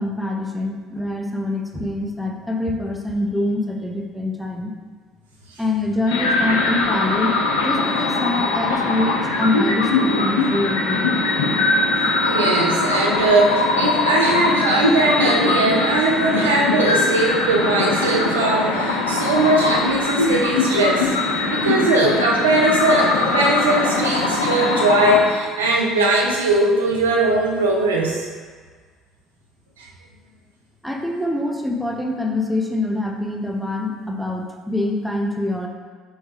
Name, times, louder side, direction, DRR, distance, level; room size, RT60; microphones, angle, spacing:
voice 1, 0.0-4.7 5.6-11.1 30.8-35.7, left 2 dB, ahead, 1 dB, 0.6 m, -25 dB
sound 1, 6.1-25.2, left 3 dB, 85° left, 0.5 m, -21 dB
voice 2, 12.2-21.2 21.5-28.3 29.8-29.9, right 2 dB, 90° right, -2 dB, 0.5 m, -20 dB
6.3 x 2.2 x 3.2 m, 1.5 s
hypercardioid pair, 65°, 0 cm